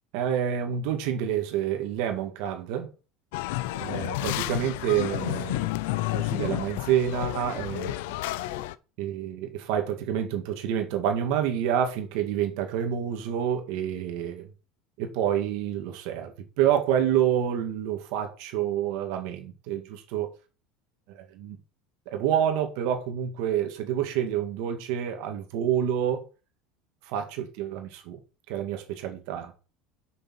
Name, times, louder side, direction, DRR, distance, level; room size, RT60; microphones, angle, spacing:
voice 1, 0.1-2.9 3.7-5.7 6.1-8.0 9.0-14.5 15.0-20.3 21.1-21.6 22.1-26.2 27.1-28.2 28.5-29.5, right 10 dB, 55° right, 2.0 m, -28 dB
sound 1, 3.3-8.7, left 16 dB, 65° left, 0.5 m, -31 dB
6.9 x 6.6 x 6.1 m
cardioid pair, 180°, 0 cm